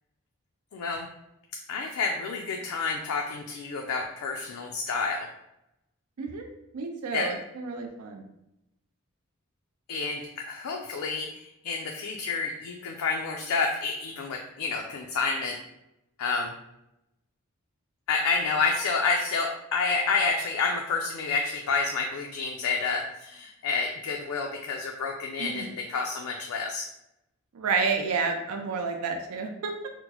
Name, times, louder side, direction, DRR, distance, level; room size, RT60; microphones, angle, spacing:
voice 1, 0.7-1.1 1.7-5.3 7.1-7.3 9.9-15.6 16.2-16.5 18.1-26.9, left 4 dB, 85° left, 1 dB, 0.4 m, -29 dB
voice 2, 6.7-8.2 25.4-25.7 27.5-29.9, right 4 dB, 85° right, 3 dB, 0.4 m, -30 dB
4.3 x 2.0 x 2.8 m, 0.86 s
head